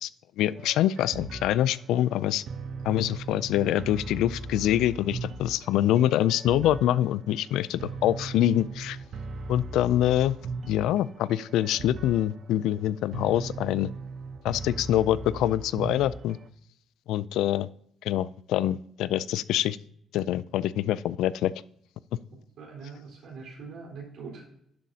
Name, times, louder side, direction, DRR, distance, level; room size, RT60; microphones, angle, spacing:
voice 1, 0.4-2.4 2.8-9.0 9.5-10.4 10.7-13.9 14.4-16.4 17.1-17.7 18.0-19.8 20.1-21.5, left 12 dB, 90° left, 18 dB, 0.3 m, -25 dB
sound 1, 0.6-16.5, right 3 dB, 55° right, 0.7 m, -39 dB
voice 2, 22.6-24.5, right 5 dB, 75° right, -1 dB, 4.1 m, -42 dB
11.5 x 7.4 x 2.8 m, 0.70 s
cardioid pair, 90°, 0 cm